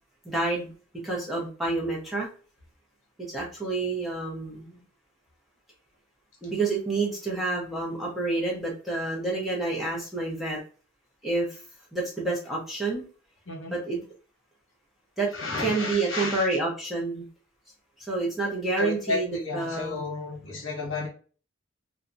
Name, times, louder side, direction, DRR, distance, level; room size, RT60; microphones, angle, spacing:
voice 1, 0.2-0.7 1.0-2.3 3.3-4.8 6.4-10.6 11.2-11.6 11.9-13.1 13.7-14.0 15.2-15.3 15.6-17.2 18.1-20.0, right 3 dB, ahead, -4 dB, 0.6 m, -29 dB
voice 2, 15.3-16.5 18.8-21.1, left 3 dB, 65° left, 0 dB, 0.9 m, -32 dB
2.7 x 2.2 x 2.5 m, 0.38 s
head